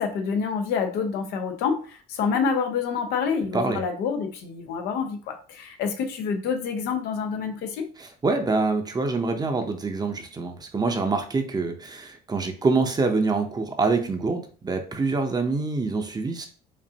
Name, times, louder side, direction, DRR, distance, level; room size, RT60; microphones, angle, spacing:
voice 1, 0.0-7.9, left 6 dB, 80° left, 5 dB, 0.8 m, -27 dB
voice 2, 8.0-16.5, right 3 dB, 25° right, 5 dB, 0.7 m, -25 dB
5.2 x 2.5 x 2.8 m, 0.40 s
cardioid pair, 110°, 17 cm